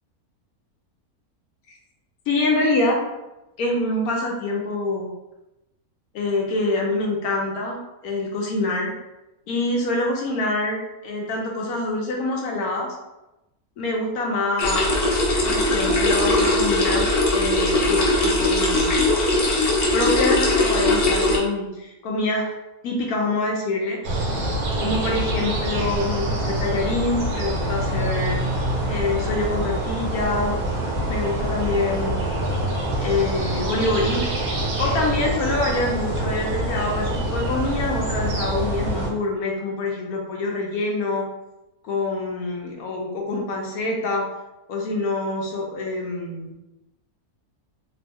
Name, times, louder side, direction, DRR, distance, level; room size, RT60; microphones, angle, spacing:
voice 1, 2.3-3.0 3.6-5.1 6.1-8.9 9.5-12.9 13.8-14.8 15.4-18.9 19.9-22.5 22.8-24.0 24.7-28.4 28.9-30.5 31.1-32.2 33.0-41.2 41.8-44.2 44.7-46.5, left 2 dB, 75° left, 0 dB, 1.1 m, -25 dB
sound 1, 14.6-21.4, left 2 dB, 55° left, 0.7 m, -20 dB
sound 2, 24.0-39.1, right 1 dB, 85° right, 1.2 m, -25 dB
3.1 x 2.0 x 3.4 m, 0.97 s
omnidirectional pair, 1.6 m